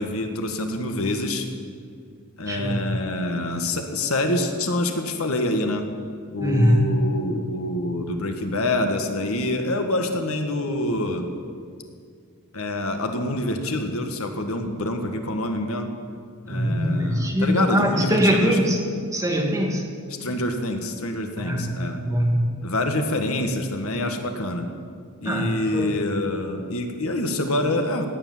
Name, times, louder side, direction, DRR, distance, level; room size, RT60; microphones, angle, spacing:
voice 1, 0.0-1.4 2.4-5.8 6.3-11.3 12.5-15.9 16.4-18.6 20.2-22.0 22.6-24.7 25.2-28.1, left 1 dB, 70° left, 5 dB, 1.6 m, -26 dB
voice 2, 2.5-2.9 6.4-7.0 16.5-18.8 19.1-19.8 21.4-22.5 25.3-25.9, equal, 15° right, 0 dB, 2.0 m, -22 dB
17.5 x 10.0 x 7.3 m, 2.1 s
head